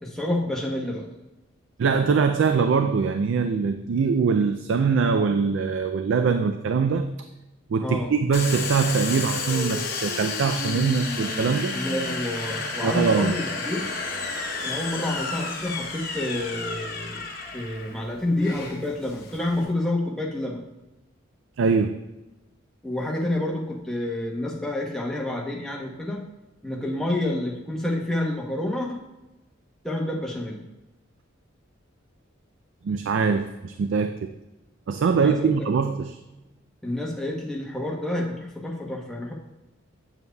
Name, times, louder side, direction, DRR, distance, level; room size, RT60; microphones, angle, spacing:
voice 1, 0.0-1.0 7.8-8.1 11.7-13.9 14.6-17.2 17.5-20.6 22.8-26.2 26.6-29.0 29.8-30.6 35.1-35.6 36.8-39.3, left 1 dB, 5° left, -2 dB, 0.9 m, -28 dB
voice 2, 1.8-7.1 7.7-11.7 12.8-13.3 21.6-22.0 32.8-34.3 34.9-36.2, right 5 dB, 65° right, 8 dB, 0.3 m, -23 dB
Domestic sounds home sounds, 8.3-19.7, left 3 dB, 50° left, 0.9 m, -31 dB
7.9 x 7.1 x 2.3 m, 1.0 s
head